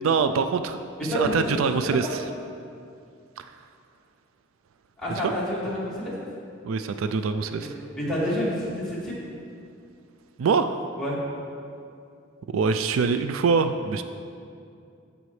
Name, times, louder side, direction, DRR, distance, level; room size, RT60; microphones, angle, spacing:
voice 1, 0.0-2.2 3.4-3.5 5.1-5.3 6.6-7.8 10.4-10.8 12.5-14.1, right 5 dB, 80° right, 9 dB, 0.4 m, -24 dB
voice 2, 1.1-1.6 1.8-2.0 5.0-6.1 7.9-9.2 11.0-11.2, equal, 5° left, -9 dB, 2.1 m, -28 dB
14.0 x 5.2 x 3.2 m, 2.5 s
head